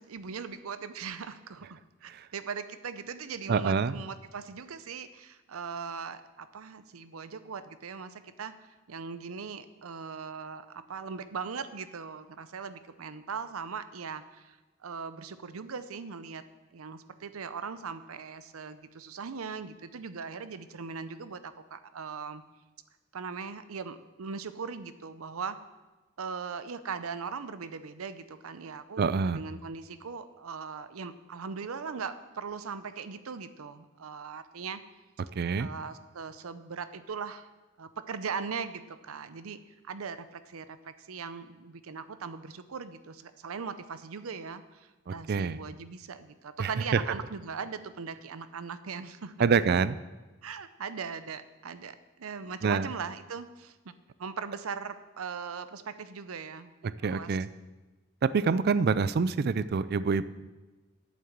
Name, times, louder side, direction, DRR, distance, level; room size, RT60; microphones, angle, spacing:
voice 1, 0.0-14.6 14.8-16.4 16.7-22.4 23.1-25.6 26.2-34.8 35.5-37.5 37.8-49.3 50.4-53.9 54.2-57.4, right 5 dB, 90° right, 12 dB, 0.6 m, -39 dB
voice 2, 3.5-4.0 29.0-29.4 35.4-35.7 45.1-45.6 46.6-46.7 49.4-50.0 52.6-52.9 57.0-57.5 58.2-60.3, right 5 dB, 50° right, 16 dB, 0.4 m, -26 dB
8.6 x 7.4 x 7.3 m, 1.2 s
head